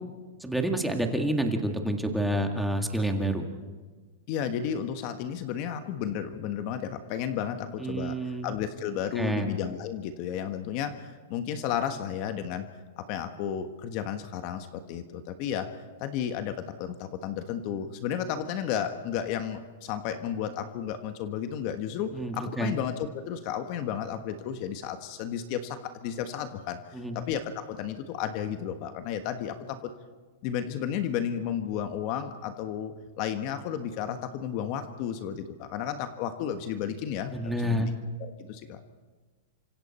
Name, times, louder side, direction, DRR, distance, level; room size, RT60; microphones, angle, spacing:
voice 1, 0.4-3.5 7.8-8.5 9.2-9.5 22.1-22.8 26.9-27.2 37.3-37.9, right 1 dB, ahead, 3 dB, 2.0 m, -28 dB
voice 2, 4.3-12.7 13.0-15.7 16.0-29.9 30.4-37.8 38.2-38.8, left 9 dB, 45° left, 8 dB, 1.4 m, -33 dB
29.0 x 25.5 x 4.4 m, 1.4 s
hypercardioid pair, 145°, 0 cm